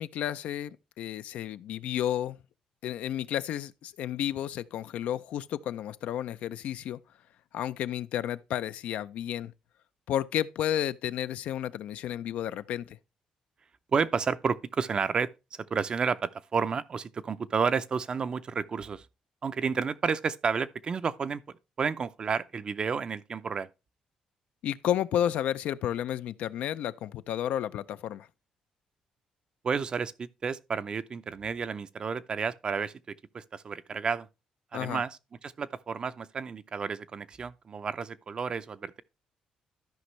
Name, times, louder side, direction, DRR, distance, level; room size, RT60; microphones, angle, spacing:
voice 1, 0.0-2.4 2.8-7.0 7.5-9.5 10.1-13.0 24.6-28.3 34.7-35.0, left 11 dB, 80° left, 0.4 m, -32 dB
voice 2, 13.9-19.1 19.4-23.7 29.6-34.3 34.7-39.0, right 5 dB, 40° right, 0.5 m, -31 dB
13.0 x 5.2 x 3.1 m
cardioid pair, 105°, 2 cm